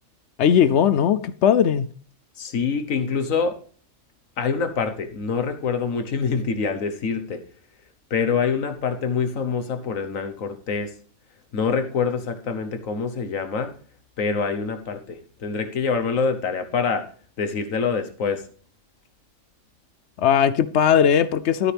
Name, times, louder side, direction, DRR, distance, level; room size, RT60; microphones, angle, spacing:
voice 1, 0.4-1.9 20.2-21.7, left 8 dB, 65° left, 0.8 m, -18 dB
voice 2, 2.4-3.5 4.4-7.4 8.1-10.9 11.5-13.7 14.2-17.1 17.4-18.4, left 5 dB, 80° left, 1.6 m, -25 dB
13.0 x 9.0 x 3.5 m
omnidirectional pair, 1.4 m